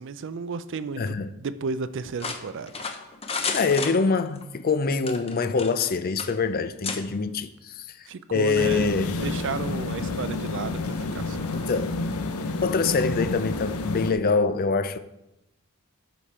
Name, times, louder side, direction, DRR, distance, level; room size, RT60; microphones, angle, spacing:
voice 1, 0.0-2.9 8.1-8.9 9.2-11.7, right 5 dB, 55° right, 0.4 m, -33 dB
voice 2, 1.0-1.3 3.5-9.2 11.5-11.9 12.6-15.0, left 4 dB, 40° left, 0.5 m, -25 dB
sound 1, 2.2-4.4 5.0-5.9 6.2-6.3 6.8-7.0, left 4 dB, 25° left, 0.8 m, -31 dB
sound 2, 8.5-14.1, left 3 dB, 75° left, 0.7 m, -30 dB
12.0 x 5.1 x 4.2 m
head